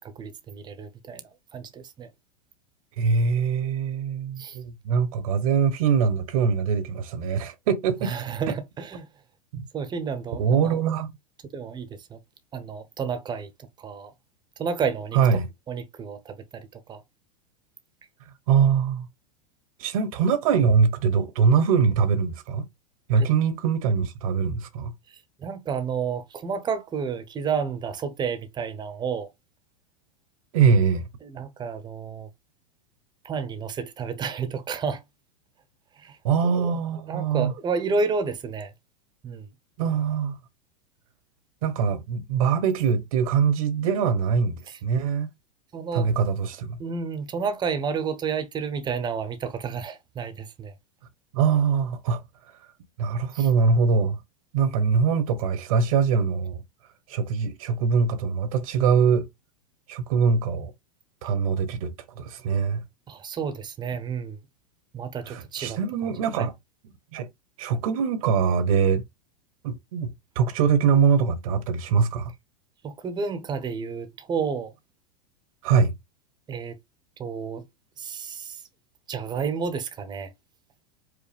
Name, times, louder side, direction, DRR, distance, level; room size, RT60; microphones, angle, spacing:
voice 1, 0.2-1.2 1.5-2.1 4.4-4.6 8.0-9.1 9.7-10.9 11.5-12.2 12.5-13.5 13.8-14.1 14.6-15.4 15.7-17.0 23.2-23.3 25.4-29.3 31.2-32.3 33.2-35.0 36.0-36.2 36.4-36.7 37.1-38.7 39.2-39.5 44.7-44.8 45.7-46.1 46.8-50.7 53.3-53.5 63.1-64.4 64.9-65.8 66.3-66.5 72.8-74.7 76.5-76.8 77.2-77.6 78.0-78.6 79.1-80.3, right 5 dB, 20° right, 0.8 m, -31 dB
voice 2, 3.0-8.1 9.5-9.7 10.4-11.1 15.1-15.5 18.5-19.1 19.8-22.6 23.1-24.9 30.5-31.0 36.2-37.5 39.8-40.4 41.6-45.3 45.9-46.8 51.3-52.2 53.0-54.2 54.5-56.6 57.1-59.3 59.9-60.7 61.2-62.8 65.3-66.5 67.1-67.3 67.6-69.0 69.6-72.3 75.6-75.9, right 6 dB, 65° right, 1.0 m, -23 dB
5.0 x 2.1 x 3.4 m
hypercardioid pair, 115°, 19 cm